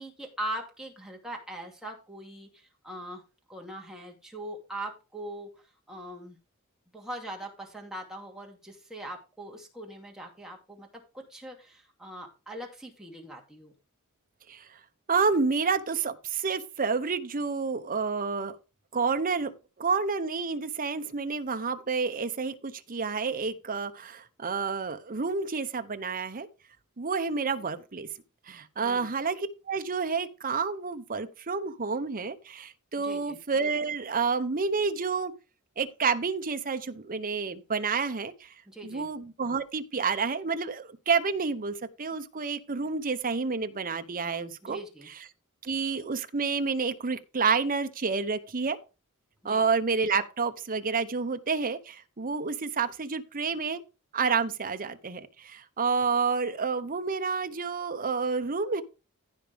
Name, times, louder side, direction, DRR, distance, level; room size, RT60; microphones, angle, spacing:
voice 1, 0.0-3.2 3.5-6.4 6.9-13.7 27.6-27.7 28.8-29.1 33.0-33.4 38.7-39.1 44.6-45.1 49.4-49.7, right 1 dB, 5° right, 2.6 m, -41 dB
voice 2, 15.1-18.6 18.9-19.5 19.8-26.5 27.0-28.1 28.5-35.3 35.8-38.5 38.8-44.8 45.6-48.8 49.4-53.8 54.1-58.8, right 5 dB, 40° right, 0.9 m, -29 dB
15.0 x 5.1 x 3.5 m
head